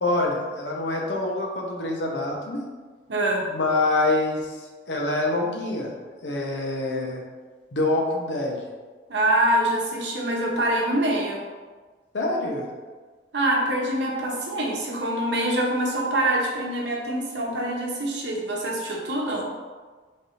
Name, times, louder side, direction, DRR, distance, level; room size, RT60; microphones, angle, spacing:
voice 1, 0.0-2.6 3.5-4.6 4.9-5.9 6.2-7.2 7.7-8.6 12.1-12.6, left 2 dB, 75° left, -1 dB, 0.7 m, -25 dB
voice 2, 3.1-3.5 9.1-11.4 13.3-19.4, right 1 dB, 75° right, -1 dB, 0.8 m, -25 dB
3.3 x 2.6 x 4.2 m, 1.4 s
head